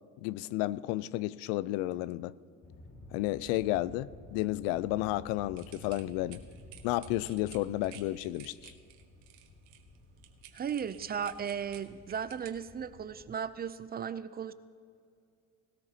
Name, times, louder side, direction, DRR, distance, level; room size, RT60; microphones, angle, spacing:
voice 1, 0.2-2.4 3.1-6.4 6.8-8.7, left 16 dB, 80° left, 19 dB, 0.5 m, -32 dB
sound 1, 2.6-13.3, left 1 dB, 30° left, 3.0 m, -53 dB
sound 2, 5.6-12.5, right 12 dB, 80° right, 1.4 m, -53 dB
voice 2, 10.5-14.5, right 7 dB, 25° right, 14 dB, 0.4 m, -36 dB
19.0 x 13.5 x 2.8 m, 2.3 s
supercardioid pair, 90°, 39 cm